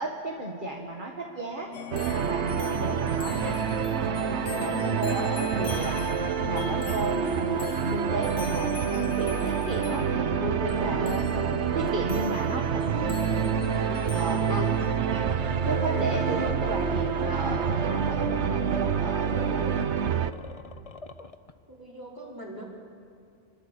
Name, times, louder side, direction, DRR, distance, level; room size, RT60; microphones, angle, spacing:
voice 1, 0.0-1.7 2.0-3.6 3.9-11.5 11.7-13.8 14.1-14.7 15.1-15.3 15.6-19.9, right 2 dB, 40° right, 0 dB, 2.1 m, -34 dB
sound 1, 1.7-15.0, left 9 dB, 75° left, 1.2 m, -40 dB
sound 2, 1.9-20.3, right 7 dB, 70° right, 1.1 m, -27 dB
Weird Monster Noise, 12.7-21.5, left 4 dB, 35° left, 0.9 m, -39 dB
voice 2, 21.7-22.6, right 1 dB, 15° right, -3 dB, 4.8 m, -42 dB
29.0 x 23.5 x 8.4 m, 2.5 s
omnidirectional pair, 1.2 m